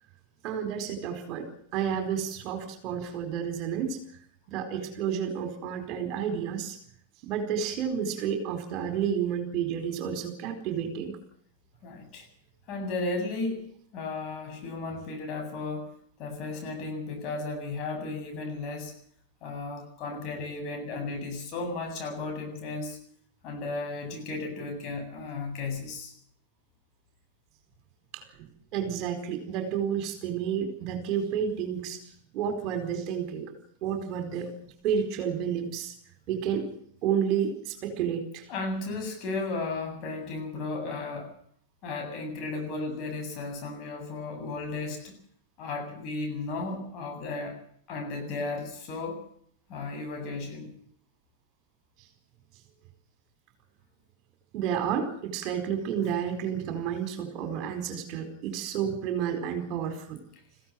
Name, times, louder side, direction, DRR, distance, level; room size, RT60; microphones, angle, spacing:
voice 1, 0.4-1.5 1.7-4.0 4.5-6.8 7.2-11.2 28.1-32.0 32.3-33.5 33.8-34.5 34.8-35.9 36.3-36.7 37.0-38.5 54.5-60.2, right 8 dB, 45° right, 7 dB, 4.6 m, -30 dB
voice 2, 11.8-12.2 12.7-15.9 16.2-18.9 19.4-23.0 23.4-26.1 38.5-41.4 41.8-45.1 45.6-47.6 47.9-49.2 49.7-50.7, left 3 dB, 45° left, 4 dB, 7.8 m, -34 dB
21.5 x 16.0 x 7.7 m, 0.63 s
figure-of-eight pair, 95°, 0 cm